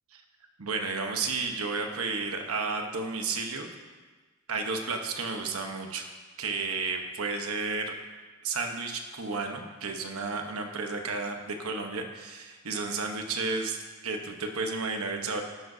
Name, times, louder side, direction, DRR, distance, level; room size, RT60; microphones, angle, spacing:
voice 1, 0.6-3.7 4.5-6.0 6.4-7.9 8.4-15.4, right 4 dB, 85° right, 4 dB, 1.1 m, -32 dB
12.5 x 11.5 x 2.7 m, 1.3 s
head